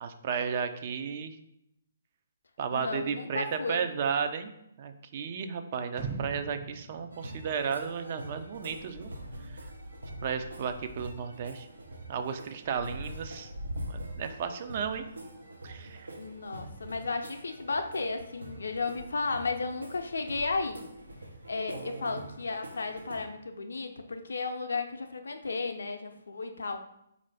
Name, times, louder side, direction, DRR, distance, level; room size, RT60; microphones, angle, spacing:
voice 1, 0.0-1.4 2.6-4.5 4.8-9.1 9.5-9.6 10.2-11.7 12.1-13.5 13.9-15.0 15.6-16.1 21.7-22.3, right 6 dB, 45° right, 8 dB, 0.3 m, -34 dB
voice 2, 2.7-3.8 16.2-20.8 21.5-26.8, left 3 dB, 80° left, 6 dB, 0.4 m, -34 dB
sound 1, 6.0-8.1 8.5-8.6, right 4 dB, 25° right, 0.7 m, -40 dB
sound 2, 7.1-23.3, right 1 dB, 90° right, 0.6 m, -44 dB
3.8 x 2.5 x 3.3 m, 0.79 s
hypercardioid pair, 140°, 0 cm